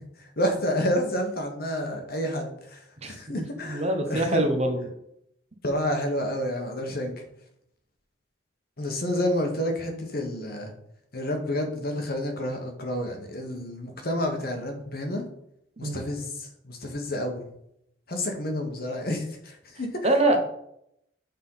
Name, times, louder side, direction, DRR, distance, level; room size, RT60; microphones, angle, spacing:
voice 1, 0.2-4.5 5.6-7.2 8.8-10.7 11.1-15.2 15.8-17.4 18.1-19.9, left 1 dB, 55° left, 4 dB, 1.4 m, -29 dB
voice 2, 3.0-4.8 15.8-16.1 20.0-20.4, right 1 dB, 35° right, 5 dB, 0.9 m, -25 dB
7.3 x 3.9 x 5.7 m, 0.76 s
head